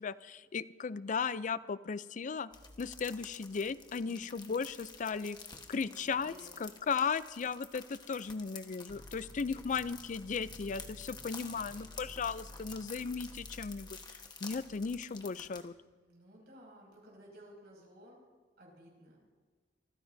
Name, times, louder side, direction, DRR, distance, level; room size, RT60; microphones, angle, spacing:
voice 1, 0.0-2.5 2.8-5.4 5.7-6.3 6.6-15.7, left 5 dB, 45° left, 16 dB, 0.4 m, -36 dB
sound 1, 2.5-15.6, left 5 dB, 25° left, 1.2 m, -51 dB
voice 2, 4.0-4.4 4.9-5.5 5.8-6.5 9.1-9.4 10.4-11.4 15.9-18.2 18.6-19.2, equal, 60° right, -1 dB, 6.1 m, -58 dB
sound 2, 8.9-14.9, left 1 dB, 10° left, 3.9 m, -53 dB
25.5 x 15.0 x 2.7 m, 1.4 s
head